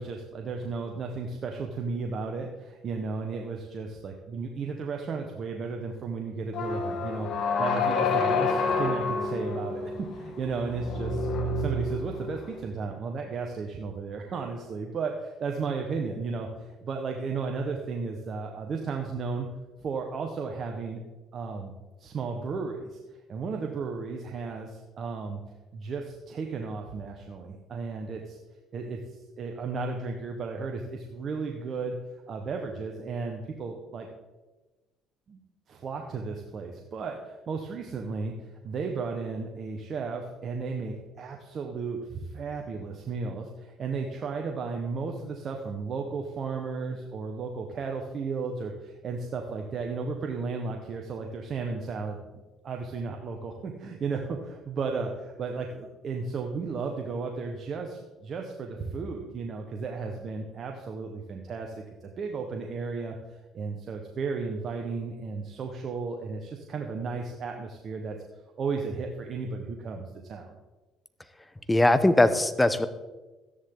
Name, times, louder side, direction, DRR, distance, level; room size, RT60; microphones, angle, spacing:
voice 1, 0.0-9.8 10.1-19.5 19.8-21.0 21.3-21.7 22.0-23.0 23.3-25.4 25.7-28.4 28.7-31.9 32.3-34.1 35.3-35.4 35.7-52.2 52.6-61.7 62.0-63.2 63.5-68.2 68.6-70.6, right 4 dB, 50° right, 2 dB, 1.3 m, -34 dB
sound 1, 6.5-12.5, left 3 dB, 65° left, 2.1 m, -28 dB
voice 2, 71.7-72.9, left 1 dB, 10° left, 12 dB, 0.9 m, -20 dB
13.5 x 10.0 x 3.9 m, 1.2 s
supercardioid pair, 85°, 0 cm